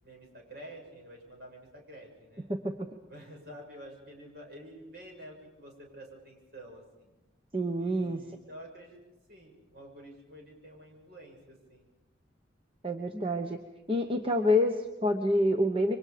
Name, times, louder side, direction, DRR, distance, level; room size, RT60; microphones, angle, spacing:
voice 1, 0.0-2.5 3.1-7.1 7.8-9.0 9.3-11.9, equal, 55° right, 1 dB, 6.6 m, -49 dB
voice 2, 2.5-2.9 7.5-8.2 12.8-13.6 13.9-16.0, left 1 dB, 30° right, 4 dB, 1.1 m, -27 dB
28.0 x 24.0 x 5.2 m, 1.0 s
head